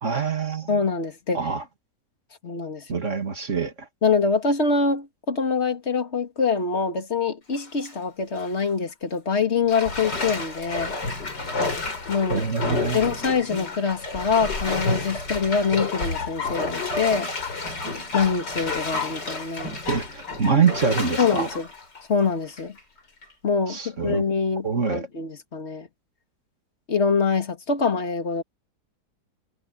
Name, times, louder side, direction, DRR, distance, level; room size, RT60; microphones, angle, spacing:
voice 1, 0.0-0.7 1.3-1.6 2.9-3.9 12.3-13.2 19.9-21.5 23.7-24.2 24.6-25.1, right 5 dB, 45° right, 2.5 m, -25 dB
voice 2, 0.7-1.4 2.4-3.0 4.0-10.9 12.1-12.4 12.9-17.3 18.1-19.7 21.2-21.7 22.1-22.8 23.4-25.9 26.9-28.4, left 5 dB, 40° left, 2.6 m, -24 dB
Bathtub (filling or washing), 7.5-7.9 8.4-8.5 9.7-22.8 23.2-23.3, left 3 dB, 80° left, 5.2 m, -30 dB
omnidirectional pair, 1.8 m